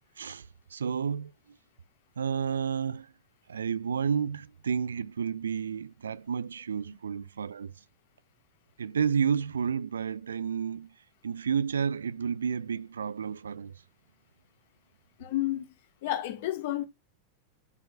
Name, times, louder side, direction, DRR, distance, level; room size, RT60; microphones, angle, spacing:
voice 1, 0.7-1.3 2.2-3.1 3.5-7.7 8.8-10.9 11.2-13.7, right 7 dB, 70° right, 0.4 m, -31 dB
voice 2, 15.2-15.7 16.0-16.9, left 13 dB, 55° left, 1.4 m, -30 dB
9.6 x 4.5 x 2.3 m
figure-of-eight pair, 90°, 0 cm